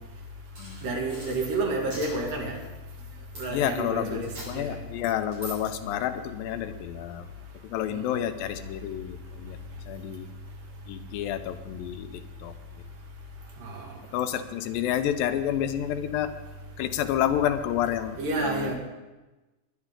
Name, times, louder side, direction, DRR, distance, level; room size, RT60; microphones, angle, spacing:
sound 1, 0.6-1.4 1.9-2.1 3.4-3.5 4.2-4.5 5.3-5.5, right 2 dB, 35° right, 6.7 m, -41 dB
voice 1, 0.8-2.6 3.4-4.8 7.9-8.1 13.6-13.9 18.2-18.8, right 2 dB, 70° right, 0 dB, 3.7 m, -30 dB
voice 2, 3.5-7.3 7.6-9.6 9.9-10.3 10.9-12.5 14.1-16.4 16.8-18.7, left 10 dB, 80° left, 9 dB, 2.4 m, -29 dB
22.0 x 10.0 x 3.7 m, 1.1 s
omnidirectional pair, 4.1 m